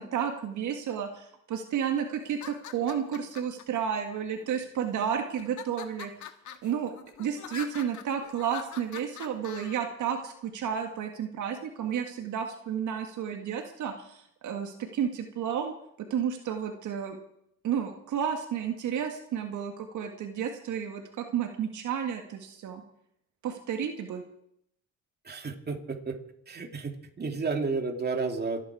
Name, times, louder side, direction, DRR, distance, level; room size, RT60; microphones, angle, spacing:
voice 1, 0.0-6.1 6.6-6.9 7.2-15.7 16.0-17.2 17.6-22.8 23.4-24.2, right 8 dB, 75° right, 4 dB, 1.8 m, -32 dB
sound 1, 2.3-3.6 4.4-4.9 5.4-9.8, left 9 dB, 75° left, 1.5 m, -44 dB
voice 2, 25.2-26.2 26.5-28.6, right 4 dB, 35° right, 3 dB, 2.7 m, -32 dB
27.0 x 10.0 x 4.9 m, 0.72 s
cardioid pair, 90°, 30 cm